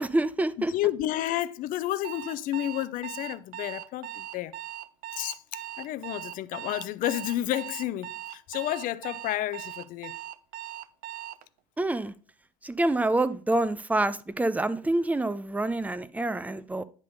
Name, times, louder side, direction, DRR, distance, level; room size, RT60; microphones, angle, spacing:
voice 1, 0.0-0.7 11.8-12.1 12.6-16.8, right 2 dB, 10° right, 0.6 m, -27 dB
voice 2, 0.7-4.5 5.1-5.4 5.8-10.2, left 14 dB, 55° left, 0.6 m, -31 dB
Alarm, 2.0-11.4, right 13 dB, 55° right, 0.5 m, -40 dB
9.8 x 3.4 x 5.3 m
hypercardioid pair, 65°, 17 cm